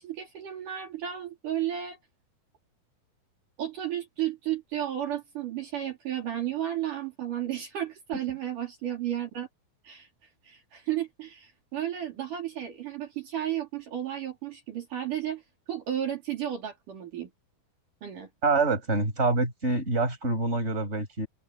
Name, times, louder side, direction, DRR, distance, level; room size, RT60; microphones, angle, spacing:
voice 1, 0.0-2.0 3.6-9.5 9.8-10.1 10.4-15.4 15.7-17.3 18.0-18.3, right 11 dB, 60° right, 4.7 m, -33 dB
voice 2, 18.4-21.3, right 3 dB, 15° right, 6.1 m, -26 dB
omnidirectional pair, 4.2 m